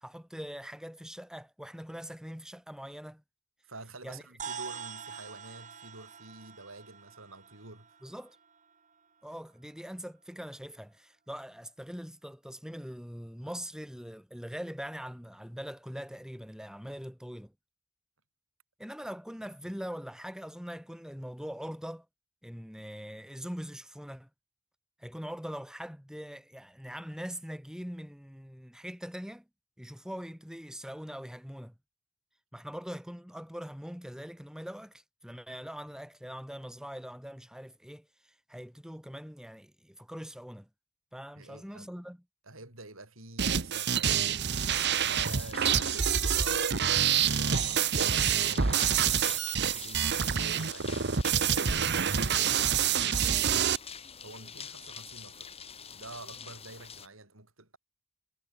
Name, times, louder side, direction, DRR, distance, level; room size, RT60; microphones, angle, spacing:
voice 1, 0.0-3.2 4.0-4.2 8.0-8.4 9.2-17.5 18.8-22.1 22.4-24.3 25.0-29.4 29.8-31.7 32.5-40.7 41.1-42.2, equal, 5° right, 3.5 m, -42 dB
voice 2, 3.7-8.0 41.4-41.9 42.4-53.7 54.2-55.5 55.9-57.8, right 2 dB, 70° right, 7.5 m, -49 dB
sound 1, 4.4-9.0, right 6 dB, 35° right, 4.6 m, -45 dB
sound 2, 43.4-53.8, right 8 dB, 55° right, 1.1 m, -27 dB
sound 3, 44.6-57.1, left 7 dB, 30° left, 2.3 m, -46 dB
head